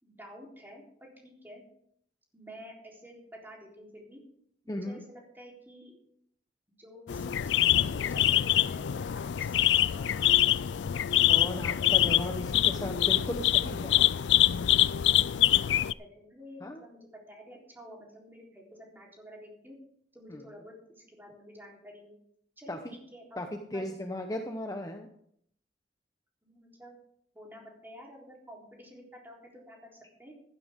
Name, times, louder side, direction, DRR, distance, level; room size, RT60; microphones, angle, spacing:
voice 1, 0.0-1.6 2.3-4.2 4.6-6.0 6.8-10.4 15.5-19.8 20.1-22.1 22.6-23.9 26.4-27.0 27.3-30.3, equal, 10° right, -2 dB, 3.8 m, -50 dB
voice 2, 4.7-5.0 11.3-14.0 16.6-16.8 20.3-20.4 22.7-22.9 23.4-25.1, left 1 dB, 20° left, 4 dB, 0.9 m, -36 dB
sound 1, 7.1-15.9, left 12 dB, 80° left, 0.4 m, -25 dB
15.0 x 11.5 x 3.7 m, 0.69 s
head